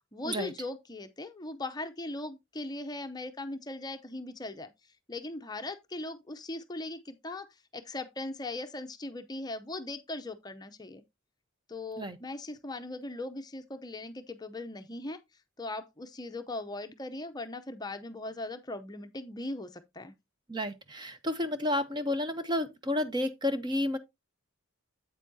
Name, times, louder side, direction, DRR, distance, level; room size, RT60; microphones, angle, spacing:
voice 1, 0.1-4.7 5.1-7.5 7.7-11.0 11.7-15.2 15.6-20.1, left 2 dB, 20° left, 0.6 m, -39 dB
voice 2, 20.5-24.0, left 1 dB, 20° right, 0.7 m, -31 dB
8.3 x 8.2 x 2.7 m
head